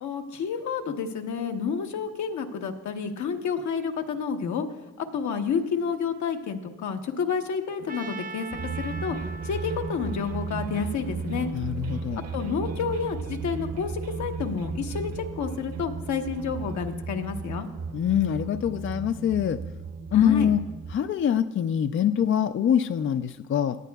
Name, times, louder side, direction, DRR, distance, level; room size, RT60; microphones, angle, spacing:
voice 1, 0.0-4.7 5.1-8.5 8.8-9.2 9.4-11.5 12.3-17.7 20.1-20.5, left 6 dB, 70° left, 4 dB, 1.1 m, -30 dB
Trumpet, 7.9-11.9, right 3 dB, 30° right, 0.5 m, -42 dB
sound 1, 8.5-20.9, right 5 dB, 55° right, 0.9 m, -35 dB
voice 2, 11.5-12.3 17.9-19.6 20.1-20.6 20.9-23.8, left 9 dB, 45° left, 10 dB, 0.4 m, -24 dB
17.5 x 10.5 x 2.3 m, 1.0 s
cardioid pair, 90°, 30 cm